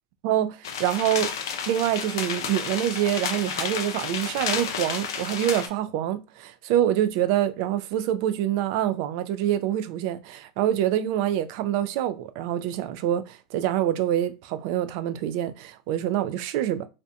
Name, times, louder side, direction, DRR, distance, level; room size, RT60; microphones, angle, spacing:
voice 1, 0.2-1.3 1.7-16.9, right 11 dB, 60° right, 0.3 m, -26 dB
sound 1, 0.6-5.7, left 7 dB, 80° left, 0.4 m, -31 dB
2.7 x 2.1 x 2.5 m
hypercardioid pair, 110°, 2 cm